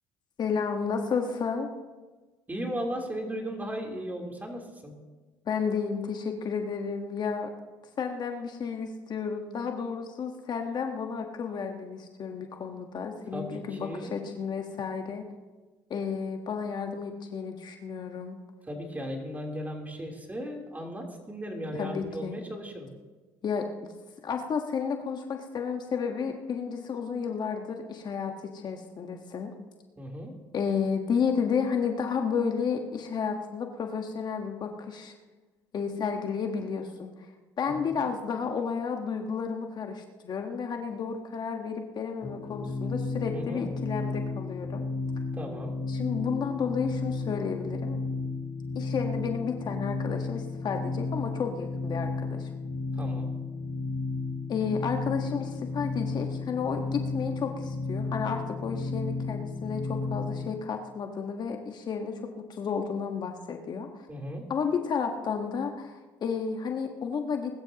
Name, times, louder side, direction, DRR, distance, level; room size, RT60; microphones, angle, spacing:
voice 1, 0.4-1.7 5.4-7.5 8.0-15.2 15.9-18.4 21.7-22.4 23.4-23.7 24.2-29.5 30.5-35.1 35.7-37.3 37.6-44.8 45.9-48.0 48.7-52.5 54.5-64.1 64.5-67.5, left 6 dB, 45° left, 4 dB, 1.4 m, -32 dB
voice 2, 2.5-4.9 13.3-14.2 18.7-22.9 30.0-30.3 37.7-38.0 43.3-43.7 45.3-45.7 52.9-53.3 64.1-64.5, equal, 15° right, 1 dB, 3.5 m, -36 dB
sound 1, 42.2-60.4, left 3 dB, 15° left, 3.9 m, -33 dB
21.0 x 13.0 x 2.9 m, 1.3 s
supercardioid pair, 75°, 10 cm